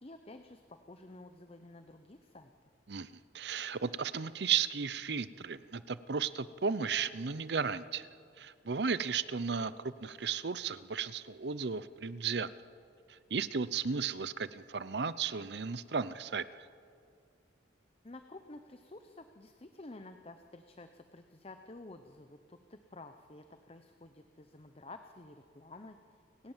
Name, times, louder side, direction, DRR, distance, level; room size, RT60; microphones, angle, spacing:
voice 1, 0.0-2.5 18.0-26.5, left 2 dB, 35° left, 7 dB, 0.8 m, -51 dB
voice 2, 3.3-8.1 8.4-12.5 13.1-16.4, right 6 dB, 65° right, 16 dB, 0.7 m, -34 dB
29.5 x 17.0 x 7.4 m, 2.3 s
head